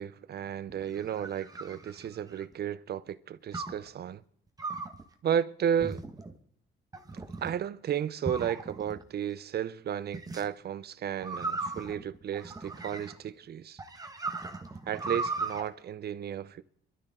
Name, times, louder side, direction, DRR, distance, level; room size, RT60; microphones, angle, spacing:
voice 1, 0.0-4.2 5.2-6.0 7.4-13.8 14.9-16.6, right 9 dB, 55° right, 0.6 m, -33 dB
sound 1, 0.7-2.5 3.5-3.9 4.6-5.0 5.8-6.3 6.9-7.5 8.2-9.0 10.1-10.4 11.2-13.3 13.8-15.6, right 3 dB, 20° right, 1.3 m, -37 dB
27.0 x 12.0 x 3.7 m
cardioid pair, 90°, 20 cm